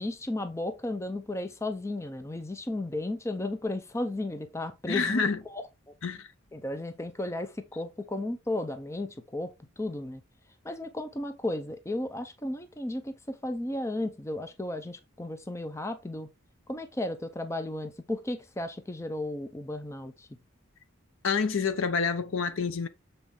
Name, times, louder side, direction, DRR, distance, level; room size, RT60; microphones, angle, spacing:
voice 1, 0.0-5.6 6.5-10.2 10.6-16.3 16.7-20.3, left 1 dB, 15° left, 0.5 m, -34 dB
voice 2, 4.9-5.4 6.0-6.3 21.2-22.9, left 5 dB, 65° left, 0.7 m, -27 dB
7.3 x 4.1 x 3.7 m
head